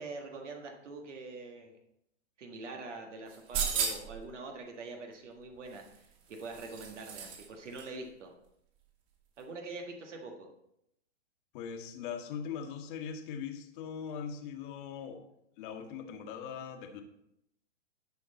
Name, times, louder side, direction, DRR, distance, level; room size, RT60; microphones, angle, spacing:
voice 1, 0.0-1.8 2.4-8.3 9.4-10.5, right 3 dB, 75° right, 2 dB, 1.7 m, -44 dB
sound 1, 3.3-4.2 5.7-7.5 7.7-7.8, right 6 dB, 45° right, 2.6 m, -35 dB
voice 2, 11.5-15.2 15.6-17.0, left 7 dB, 45° left, 4 dB, 1.4 m, -40 dB
11.0 x 5.8 x 4.1 m, 0.79 s
hypercardioid pair, 125°, 36 cm